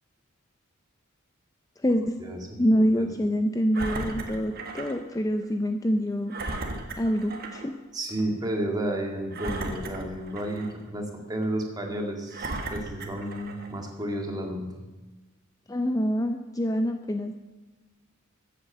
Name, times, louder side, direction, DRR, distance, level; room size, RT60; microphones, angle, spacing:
voice 1, 1.8-2.2 2.6-6.4 7.0-7.7 15.7-17.4, equal, 15° left, 7 dB, 0.5 m, -26 dB
voice 2, 2.8-3.1 7.9-14.8, right 1 dB, 20° right, 2 dB, 2.0 m, -32 dB
Engine, 3.7-5.0 5.4-5.5 6.3-7.7 8.1-8.2 9.3-10.8 11.4-11.5 12.3-13.8 14.4-14.5, right 2 dB, 50° right, 1.5 m, -36 dB
14.0 x 8.2 x 6.7 m, 1.2 s
head